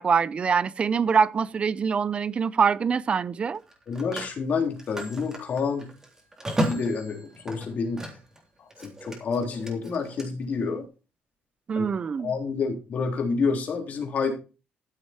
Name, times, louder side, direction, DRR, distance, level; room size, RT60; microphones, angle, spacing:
voice 1, 0.0-3.6 11.7-12.3, right 6 dB, 30° right, 0.6 m, -24 dB
Telephone, 1.4-1.6 3.5-8.4 8.7-10.3, equal, 15° right, 3.5 m, -34 dB
voice 2, 3.9-5.9 6.6-8.0 8.8-10.8 11.8-11.9 12.2-14.3, left 5 dB, 45° left, 3.4 m, -28 dB
13.5 x 7.8 x 4.3 m
cardioid pair, 145°, 4 cm